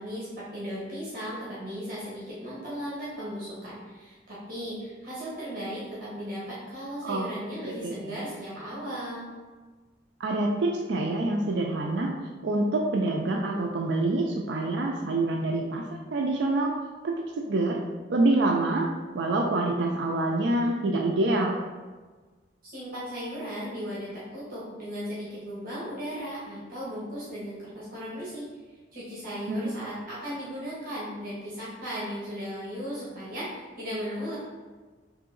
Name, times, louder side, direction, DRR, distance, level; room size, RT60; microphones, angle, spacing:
voice 1, 0.0-9.3 22.6-28.4 28.9-34.3, equal, 55° right, -8 dB, 1.1 m, -36 dB
voice 2, 7.6-8.2 10.2-12.1 12.4-16.7 17.0-17.8 18.1-18.9 19.1-21.6 29.5-29.6, right 2 dB, 80° right, 1 dB, 0.4 m, -26 dB
3.8 x 2.8 x 3.8 m, 1.3 s
head